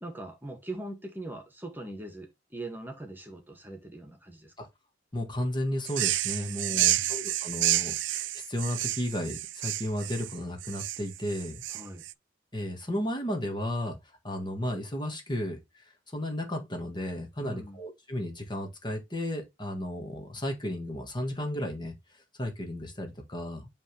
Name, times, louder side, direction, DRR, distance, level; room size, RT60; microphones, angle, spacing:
voice 1, 0.0-4.7 6.7-7.2 11.7-12.1 17.4-17.8, right 1 dB, 10° right, 1.9 m, -41 dB
voice 2, 5.1-11.6 12.5-14.0 14.2-21.9 22.4-23.7, left 1 dB, 25° left, 1.7 m, -34 dB
sound 1, 5.9-12.1, right 15 dB, 85° right, 0.4 m, -30 dB
9.0 x 3.6 x 3.3 m
head